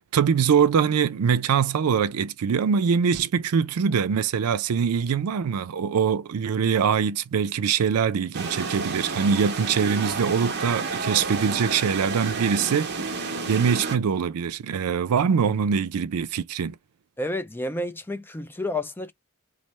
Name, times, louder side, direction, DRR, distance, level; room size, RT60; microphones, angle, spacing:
voice 1, 0.1-16.7, right 6 dB, 80° right, 0.4 m, -23 dB
sound 1, 8.3-14.0, right 4 dB, 50° right, 0.9 m, -30 dB
voice 2, 17.2-19.1, left 1 dB, 10° left, 0.4 m, -30 dB
3.2 x 2.0 x 4.1 m
head